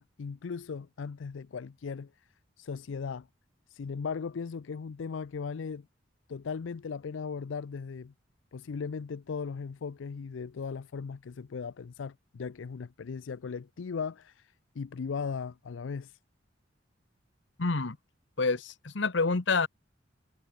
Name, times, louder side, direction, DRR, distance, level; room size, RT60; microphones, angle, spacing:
voice 1, 0.0-2.1 2.6-3.3 3.7-5.9 6.3-8.1 8.5-16.2, left 5 dB, 85° left, 0.5 m, -37 dB
voice 2, 17.6-18.0 18.4-19.7, left 4 dB, 70° left, 1.1 m, -27 dB
head